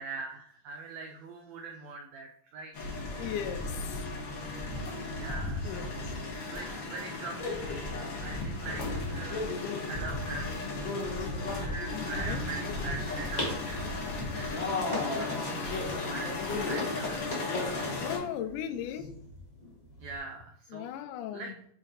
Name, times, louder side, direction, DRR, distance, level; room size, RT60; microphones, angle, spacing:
voice 1, 0.0-2.9 4.9-5.9 6.5-7.9 8.2-9.5 9.9-10.7 11.0-17.5 18.9-19.1 20.0-20.9 21.3-21.5, right 4 dB, 90° right, 2 dB, 1.5 m, -43 dB
sound 1, 2.7-18.2, left 2 dB, 55° left, 1.4 m, -34 dB
voice 2, 3.2-4.0 5.6-5.9 11.9-12.4 14.9-15.4 18.0-19.1 20.7-21.6, left 10 dB, 80° left, 8 dB, 2.0 m, -37 dB
sound 2, 12.6-20.2, left 2 dB, 20° left, 1.1 m, -41 dB
8.2 x 3.4 x 4.0 m, 0.68 s
omnidirectional pair, 4.0 m